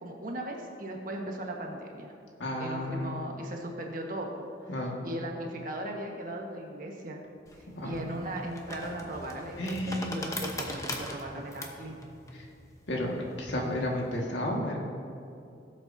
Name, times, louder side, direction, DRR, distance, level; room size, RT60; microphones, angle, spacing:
voice 1, 0.0-2.1 2.6-4.7 5.0-7.2 7.8-12.0, right 1 dB, 50° right, 0 dB, 1.4 m, -37 dB
voice 2, 2.4-3.1 4.7-5.0 7.8-8.0 9.6-10.1 12.3-12.5 12.9-14.8, left 1 dB, 80° left, -1 dB, 1.8 m, -32 dB
sound 1, 7.5-14.1, left 1 dB, 15° left, 0.9 m, -41 dB
17.5 x 7.7 x 2.7 m, 2.5 s
head